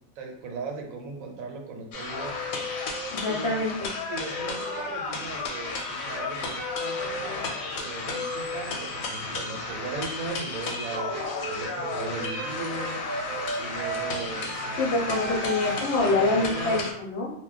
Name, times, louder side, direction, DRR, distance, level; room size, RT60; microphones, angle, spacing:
voice 1, 0.2-2.4 3.3-3.6 4.1-7.5 7.7-13.0 13.5-14.8 15.1-15.3 16.4-16.8, right 3 dB, 80° right, 2 dB, 1.0 m, -37 dB
sound 1, 1.9-16.9, left 3 dB, 85° left, 1.0 m, -33 dB
sound 2, 2.1-3.1 4.3-4.9 6.6-7.2 8.1-8.7, left 4 dB, 35° left, 0.4 m, -36 dB
voice 2, 3.1-3.7 14.8-17.3, left 2 dB, 60° left, -2 dB, 0.7 m, -25 dB
sound 3, 10.9-16.0, right 4 dB, 55° right, 0.5 m, -35 dB
2.3 x 2.1 x 3.8 m, 0.72 s
omnidirectional pair, 1.4 m